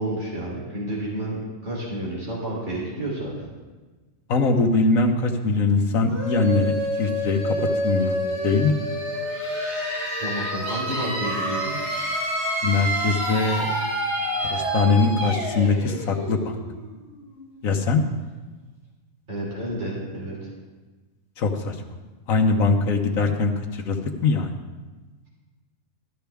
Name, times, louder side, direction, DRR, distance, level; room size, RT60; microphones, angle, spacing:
voice 1, 0.0-3.3 10.2-11.7 19.3-20.4, right 1 dB, 55° right, -5 dB, 3.6 m, -30 dB
voice 2, 4.3-7.5 7.8-8.2 8.4-8.7 12.6-13.7 14.4-16.6 17.6-18.0 21.4-21.8 22.3-24.5, left 4 dB, 70° left, 3 dB, 1.4 m, -22 dB
sound 1, 6.0-17.6, right 1 dB, 20° right, 4.6 m, -28 dB
13.5 x 12.0 x 3.5 m, 1.3 s
omnidirectional pair, 1.5 m